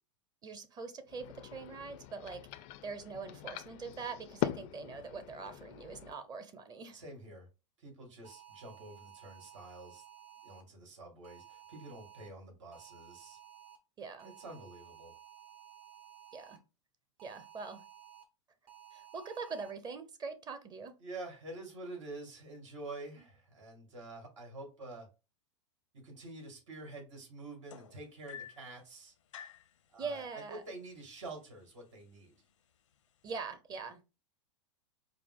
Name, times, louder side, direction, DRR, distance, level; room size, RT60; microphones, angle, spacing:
voice 1, 0.4-7.0 14.0-14.3 16.3-16.6 17.2-17.8 18.9-20.9 30.0-30.6 33.2-34.0, right 4 dB, 25° right, 0.7 m, -43 dB
sound 1, 1.1-6.1, left 14 dB, 40° left, 0.4 m, -42 dB
voice 2, 6.9-7.5 7.8-10.0 10.4-13.4 14.2-15.1 21.0-25.1 26.0-29.1 29.9-32.3, right 2 dB, 75° right, 2.0 m, -48 dB
sound 2, 8.2-10.6 11.2-12.3 12.7-13.8 14.2-16.6 17.2-18.2 18.7-19.7, right 10 dB, 55° right, 1.1 m, -55 dB
sound 3, 27.7-28.7 29.3-29.7 30.7-30.8 31.3-31.6 32.3-32.4, left 8 dB, 85° left, 0.6 m, -49 dB
4.8 x 2.0 x 3.6 m
hypercardioid pair, 115°, 16 cm